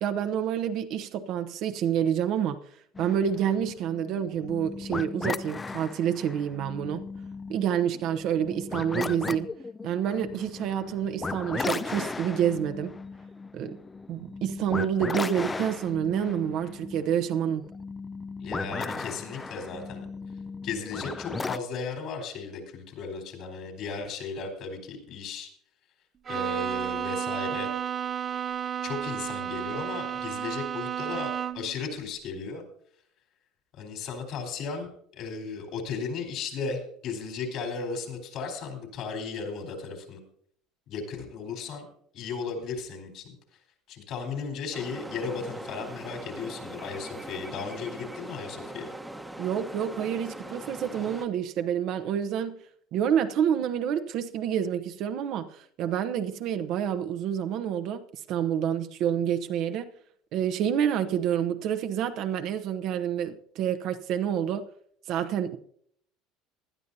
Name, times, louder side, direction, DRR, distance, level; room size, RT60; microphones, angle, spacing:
voice 1, 0.0-2.6 3.0-7.1 7.5-9.5 9.8-12.9 13.5-13.8 14.1-17.6 49.4-52.6 52.9-58.0 58.3-59.9 60.3-64.6 65.1-65.6, right 9 dB, 60° right, 1.0 m, -28 dB
sound 1, 2.9-21.6, left 4 dB, 20° left, 0.6 m, -36 dB
voice 2, 18.4-20.1 20.6-25.5 26.3-27.7 28.8-32.6 33.7-40.2 40.9-41.9 42.1-43.3 43.9-48.9, left 5 dB, 60° left, 4.1 m, -35 dB
Bowed string instrument, 26.3-31.8, right 9 dB, 35° right, 0.7 m, -32 dB
sound 2, 44.7-51.3, right 1 dB, 5° right, 1.2 m, -41 dB
19.0 x 11.5 x 2.8 m
hypercardioid pair, 80°, 0 cm